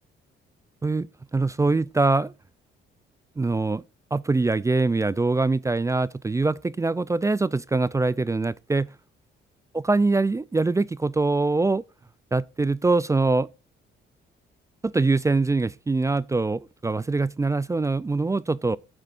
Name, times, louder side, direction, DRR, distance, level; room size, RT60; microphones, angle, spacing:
voice 1, 1.3-2.3 3.4-3.8 4.1-8.9 9.7-11.8 12.3-13.5 14.8-18.8, right 3 dB, 15° right, 0.4 m, -23 dB
10.5 x 7.6 x 2.5 m
cardioid pair, 90°, 20 cm